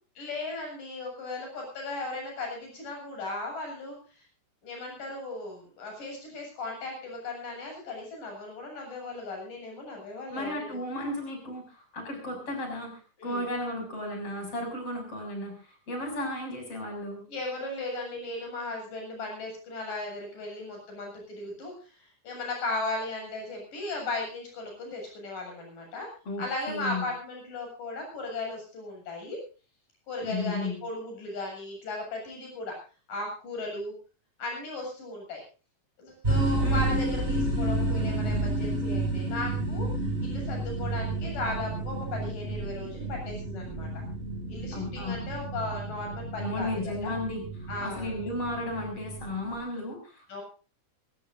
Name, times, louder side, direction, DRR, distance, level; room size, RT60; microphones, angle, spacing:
voice 1, 0.2-4.3 4.6-10.8 13.2-13.5 17.3-26.1 26.4-29.4 30.1-32.8 33.1-34.0 34.4-35.4 36.0-44.0 44.5-47.1 47.7-48.2 50.3-50.4, left 2 dB, 75° left, 1 dB, 9.4 m, -36 dB
voice 2, 10.3-17.2 26.3-27.1 30.2-30.8 36.6-37.0 44.7-45.2 46.4-50.4, left 1 dB, 45° left, 4 dB, 7.8 m, -34 dB
sound 1, 36.2-49.6, right 2 dB, 15° right, 6.3 m, -31 dB
25.5 x 16.5 x 2.6 m, 0.36 s
omnidirectional pair, 3.8 m